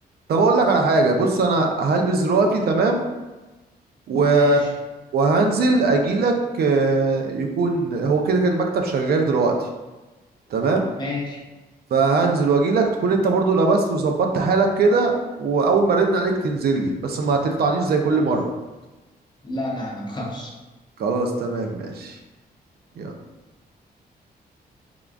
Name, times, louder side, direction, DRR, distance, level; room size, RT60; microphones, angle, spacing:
voice 1, 0.3-3.0 4.1-4.6 5.1-9.7 10.5-10.8 11.9-18.4 21.0-22.2 23.0-23.1, right 3 dB, 70° right, 3 dB, 0.5 m, -20 dB
voice 2, 4.3-4.7 11.0-11.4 19.4-20.5, left 2 dB, 25° left, -2 dB, 0.7 m, -30 dB
3.6 x 2.3 x 3.4 m, 1.1 s
wide cardioid pair, 130°, 17 cm